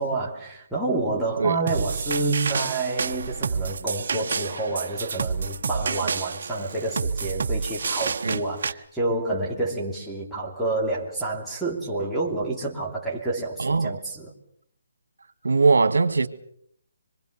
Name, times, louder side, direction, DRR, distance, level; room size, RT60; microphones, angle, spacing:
voice 1, 0.0-14.3, right 2 dB, ahead, 3.0 m, -28 dB
sound 1, 1.7-8.7, right 5 dB, 60° right, 1.4 m, -29 dB
voice 2, 13.6-14.0 15.4-16.3, right 4 dB, 85° right, 1.9 m, -20 dB
26.0 x 24.0 x 6.9 m
hypercardioid pair, 160°, 0 cm